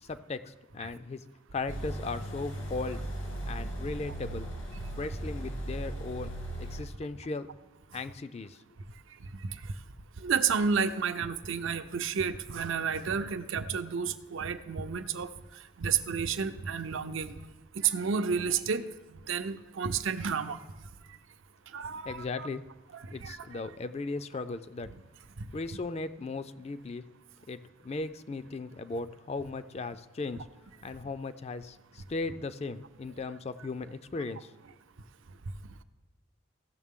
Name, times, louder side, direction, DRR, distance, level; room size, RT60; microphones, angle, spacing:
voice 1, 0.0-1.2 1.5-3.1 3.5-4.5 5.0-6.3 6.6-7.5 7.9-8.6 22.1-22.6 23.1-24.9 25.5-27.0 27.5-30.5 30.8-34.5, left 3 dB, 30° left, 12 dB, 0.4 m, -37 dB
sound 1, 1.7-6.8, right 1 dB, 80° left, 2.7 m, -37 dB
voice 2, 10.2-15.3 15.8-17.3 17.8-18.8 19.1-20.6 21.7-22.5 22.9-23.6 25.4-25.5 30.3-30.4, right 6 dB, 70° right, 11 dB, 0.5 m, -31 dB
15.5 x 6.5 x 3.7 m, 1.1 s
head